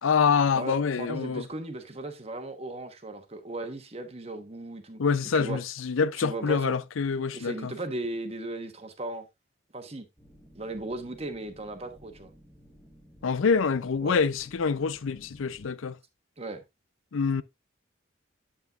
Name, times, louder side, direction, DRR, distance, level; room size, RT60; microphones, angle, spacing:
voice 1, 0.0-1.5 5.0-7.7 13.2-16.0 17.1-17.4, left 5 dB, 85° left, 0.5 m, -26 dB
voice 2, 0.5-5.0 5.3-5.6 6.2-6.7 7.3-9.2 9.7-10.1 10.5-12.3 14.0-14.2 16.4-16.6, right 2 dB, 30° right, 1.1 m, -37 dB
sound 1, 10.2-15.7, equal, 5° left, 1.6 m, -55 dB
8.6 x 8.2 x 2.4 m
head